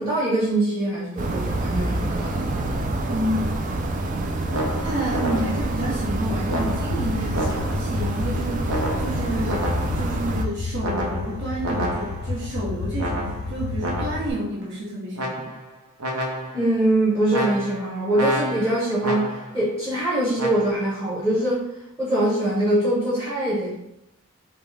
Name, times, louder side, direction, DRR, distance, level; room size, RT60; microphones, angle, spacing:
voice 1, 0.0-2.5 16.5-21.6 22.0-23.7, right 1 dB, 10° right, -8 dB, 1.1 m, -23 dB
sound 1, 1.2-10.5, right 2 dB, 35° right, 0.4 m, -27 dB
voice 2, 3.1-3.5 4.8-9.7 9.9-15.5, right 1 dB, 55° right, -7 dB, 1.1 m, -30 dB
sound 2, 4.5-5.8 6.5-8.0 8.7-10.2 10.8-12.4 13.0-14.4 15.2-15.7 16.0-16.7 17.3-19.6 20.4-20.7, right 1 dB, 80° right, 0.8 m, -30 dB
sound 3, 6.5-14.3, left 3 dB, 65° left, 0.4 m, -31 dB
5.1 x 2.2 x 3.4 m, 0.82 s
head